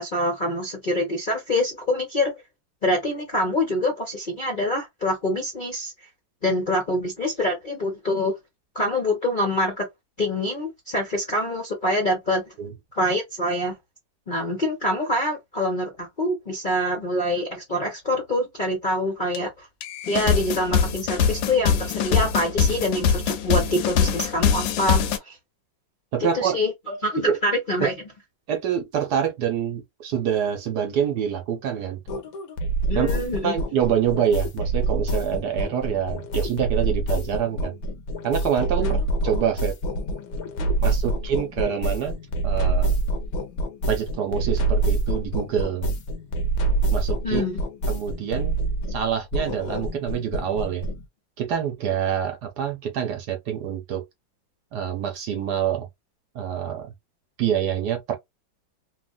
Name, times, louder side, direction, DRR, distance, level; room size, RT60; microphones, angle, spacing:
voice 1, 0.0-2.3 2.8-5.9 6.4-8.4 8.7-9.9 10.2-12.4 12.9-13.7 14.3-19.7 20.1-25.4 26.2-27.9 32.9-33.5 38.8-39.0 40.6-40.7 47.2-47.6, left 1 dB, 40° left, 0.7 m, -25 dB
sound 1, 19.3-19.4 19.8-25.2, left 7 dB, 80° left, 1.3 m, -23 dB
voice 2, 26.1-26.6 27.3-27.4 28.5-32.0 32.9-37.7 38.2-39.0 39.2-39.8 40.8-42.2 42.4-42.9 43.9-45.9 46.9-47.4 47.9-48.6 48.9-50.9 51.4-54.0 54.7-55.9 56.3-56.9 57.4-58.1, right 8 dB, 65° right, 1.2 m, -26 dB
sound 2, 32.1-51.1, right 2 dB, 65° left, 1.0 m, -26 dB
3.3 x 2.4 x 2.3 m
omnidirectional pair, 2.1 m